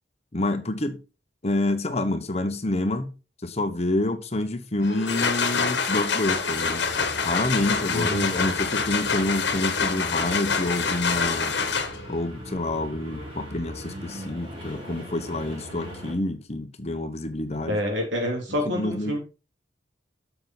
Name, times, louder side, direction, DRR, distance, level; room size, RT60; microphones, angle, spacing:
voice 1, 0.3-1.0 1.4-3.1 3.4-6.8 7.2-11.5 12.1-17.8 18.7-19.2, left 2 dB, 35° left, 1.1 m, -28 dB
sound 1, 4.8-12.2, left 5 dB, 65° left, 1.5 m, -26 dB
sound 2, 6.6-16.2, equal, 30° right, 3.8 m, -40 dB
voice 2, 7.9-8.3 17.6-19.2, left 1 dB, 80° right, 3.6 m, -27 dB
8.9 x 6.9 x 4.0 m
head